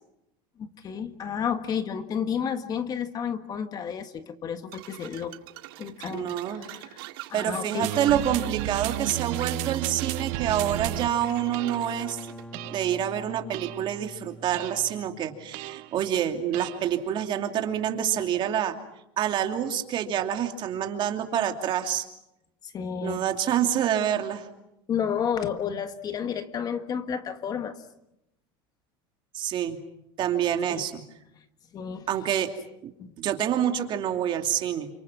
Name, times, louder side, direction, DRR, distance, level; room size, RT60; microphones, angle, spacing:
voice 1, 0.6-5.3 5.8-7.0 7.3-7.9 22.6-23.2 24.9-27.8 30.7-30.9 31.7-32.1 33.0-33.1, left 7 dB, 35° left, 9 dB, 1.6 m, -31 dB
sound 1, 4.7-12.5, right 16 dB, 85° right, 2.0 m, -44 dB
voice 2, 6.1-6.7 7.3-12.2 12.7-18.8 19.2-22.0 23.0-24.5 29.3-29.8 30.2-31.0 32.1-32.5 32.8-32.9 33.2-34.9, right 10 dB, 40° right, 5 dB, 2.7 m, -27 dB
sound 2, 7.8-11.1 11.5-11.9 12.5-13.0 13.5-13.9 14.5-14.9 15.5-16.0 16.5-17.0, right 19 dB, 65° right, 1.0 m, -32 dB
sound 3, 10.3-15.8, equal, 10° left, 1.8 m, -45 dB
29.0 x 26.5 x 6.1 m, 0.85 s
supercardioid pair, 135°, 12 cm